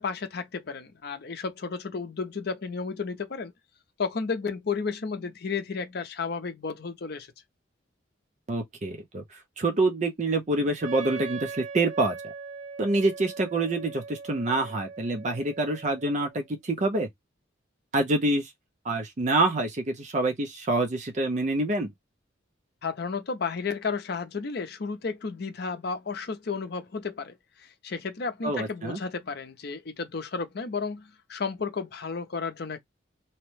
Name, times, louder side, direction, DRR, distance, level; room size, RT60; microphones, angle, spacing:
voice 1, 0.0-3.5 4.0-7.3 22.8-32.8, left 5 dB, 55° left, 0.6 m, -33 dB
voice 2, 8.5-9.2 9.6-12.3 12.8-17.1 17.9-18.5 18.8-21.9 28.4-29.0, right 2 dB, 40° right, 0.5 m, -26 dB
Wind instrument woodwind instrument, 10.8-16.4, right 5 dB, 70° right, 0.7 m, -40 dB
2.8 x 2.1 x 3.1 m
head